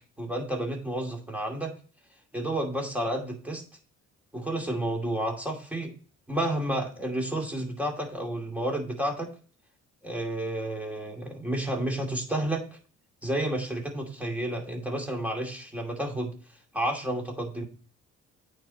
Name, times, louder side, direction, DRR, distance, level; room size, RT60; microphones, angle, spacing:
voice 1, 0.2-1.7 2.3-3.6 4.3-5.9 6.3-9.3 10.0-12.6 13.2-16.3 16.7-17.6, right 1 dB, 5° right, 1 dB, 2.5 m, -31 dB
8.9 x 4.5 x 4.2 m, 0.39 s
cardioid pair, 90°, 30 cm